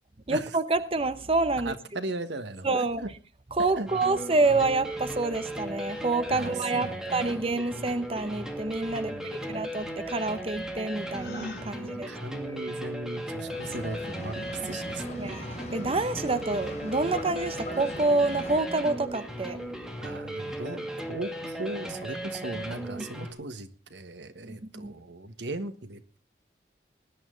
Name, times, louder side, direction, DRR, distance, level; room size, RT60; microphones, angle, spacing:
voice 1, 0.3-1.7 2.6-3.0 3.6-12.1 15.2-19.6 24.4-24.9, right 3 dB, 35° right, 11 dB, 0.8 m, -28 dB
voice 2, 1.6-3.1 3.8-3.9 6.3-7.3 9.0-9.6 11.5-15.4 20.0-26.2, right 2 dB, 85° right, 10 dB, 1.5 m, -38 dB
sound 1, 3.9-23.3, right 1 dB, 5° right, 2.5 m, -37 dB
Gasp, 11.1-11.7, left 2 dB, 70° left, 3.5 m, -38 dB
Boat Water vehicle, 13.5-18.6, left 1 dB, 40° left, 4.1 m, -40 dB
19.5 x 11.5 x 3.9 m, 0.33 s
head